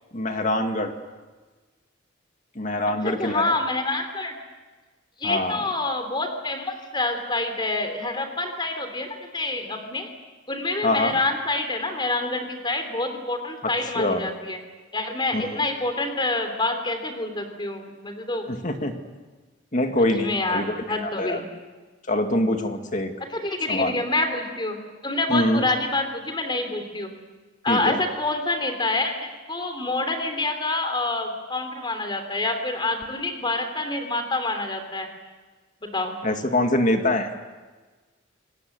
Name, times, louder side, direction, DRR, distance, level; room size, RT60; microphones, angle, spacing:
voice 1, 0.1-0.9 2.6-3.5 5.2-5.6 10.8-11.2 13.8-14.2 15.3-15.4 18.5-18.9 19.7-21.4 22.1-23.1 23.7-24.0 25.3-25.6 27.7-28.0 36.2-37.3, left 1 dB, 40° left, 5 dB, 2.2 m, -24 dB
voice 2, 3.0-4.3 5.2-9.1 9.3-10.1 10.5-14.6 14.9-18.5 20.2-21.4 23.3-24.8 25.0-27.1 27.6-35.1 35.8-36.2, left 2 dB, 25° left, 6 dB, 3.4 m, -27 dB
27.5 x 19.5 x 8.1 m, 1.3 s
head